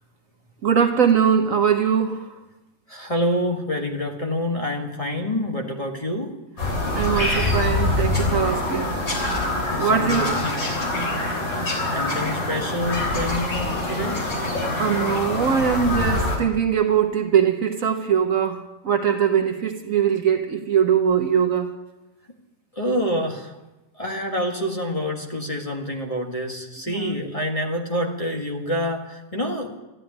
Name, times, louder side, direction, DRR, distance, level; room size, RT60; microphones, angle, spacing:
voice 1, 0.6-2.4 6.9-9.1 9.8-10.4 11.6-11.7 14.8-21.7 26.9-27.1, right 8 dB, 55° right, 6 dB, 1.3 m, -21 dB
voice 2, 2.9-6.3 9.7-10.6 11.9-14.2 22.7-23.6 24.0-29.7, equal, 20° left, 2 dB, 1.7 m, -27 dB
Bird vocalization bird call bird song, 6.6-16.4, left 2 dB, 55° left, 4.4 m, -25 dB
13.5 x 11.0 x 9.9 m, 1.0 s
omnidirectional pair, 1.8 m